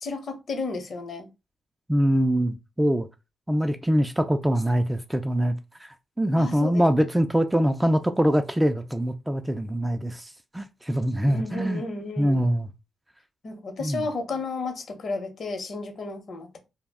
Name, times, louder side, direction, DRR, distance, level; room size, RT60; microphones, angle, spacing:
voice 1, 0.0-1.3 6.3-6.8 11.3-12.4 13.4-16.6, left 3 dB, 60° left, 0.8 m, -33 dB
voice 2, 1.9-3.1 3.5-11.8 12.2-12.7 13.8-14.0, equal, 10° right, 0.3 m, -24 dB
2.2 x 2.0 x 3.5 m
cardioid pair, 70°, 0 cm